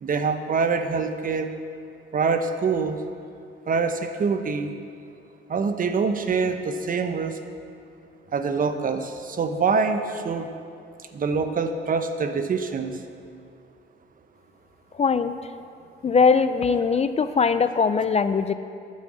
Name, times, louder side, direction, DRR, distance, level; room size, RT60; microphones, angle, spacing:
voice 1, 0.0-1.5 2.1-3.0 3.7-4.7 5.5-7.4 8.3-10.5 11.1-13.0, right 5 dB, 45° right, 8 dB, 0.9 m, -25 dB
voice 2, 15.0-15.3 16.0-18.5, left 5 dB, 35° left, 11 dB, 0.5 m, -21 dB
12.0 x 6.3 x 7.6 m, 2.5 s
cardioid pair, 90°, 20 cm